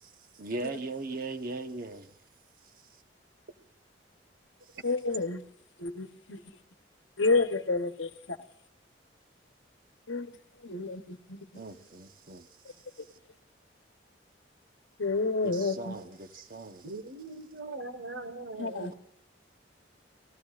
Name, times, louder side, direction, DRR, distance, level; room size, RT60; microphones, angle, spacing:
voice 1, 0.4-2.1 11.5-12.4 15.4-16.8, right 2 dB, 50° right, 1.0 m, -38 dB
voice 2, 4.8-5.4 5.8-6.4 7.2-8.4 10.1-10.3 10.6-11.4 15.0-16.0 18.6-18.9, left 3 dB, 80° left, 1.1 m, -29 dB
voice 3, 16.8-18.9, right 2 dB, 80° right, 1.5 m, -40 dB
28.0 x 17.5 x 2.5 m
head